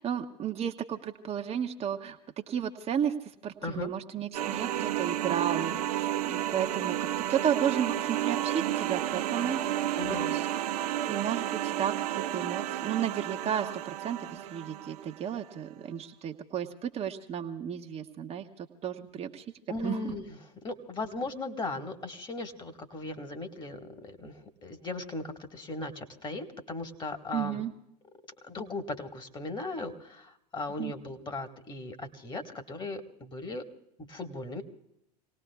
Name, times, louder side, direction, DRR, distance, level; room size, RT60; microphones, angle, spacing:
voice 1, 0.0-2.2 2.5-3.1 3.4-9.9 10.3-10.4 10.8-12.1 12.3-18.5 18.8-19.4 19.8-20.1 27.3-27.7 30.8-30.9, right 9 dB, 30° right, 3 dB, 1.0 m, -33 dB
sound 1, 4.3-15.1, right 12 dB, 65° right, 0.6 m, -31 dB
voice 2, 9.9-10.4 19.7-27.6 28.4-33.6 34.1-34.6, left 2 dB, 20° left, 5 dB, 1.7 m, -37 dB
27.5 x 18.5 x 2.4 m, 0.79 s
figure-of-eight pair, 85°, 21 cm